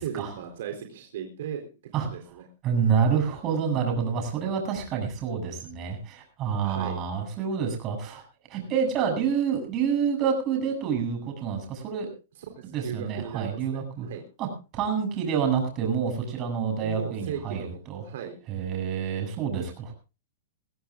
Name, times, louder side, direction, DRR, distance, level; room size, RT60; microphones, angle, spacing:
voice 1, 0.0-1.7 1.9-2.5 6.6-7.0 12.5-14.2 16.8-18.4, right 8 dB, 65° right, 3 dB, 4.0 m, -37 dB
voice 2, 2.6-8.2 8.5-12.1 12.6-14.1 14.4-14.5 14.7-18.0 18.5-19.9, right 7 dB, 30° right, 3 dB, 7.8 m, -28 dB
22.5 x 16.0 x 2.6 m, 0.32 s
hypercardioid pair, 150°, 0 cm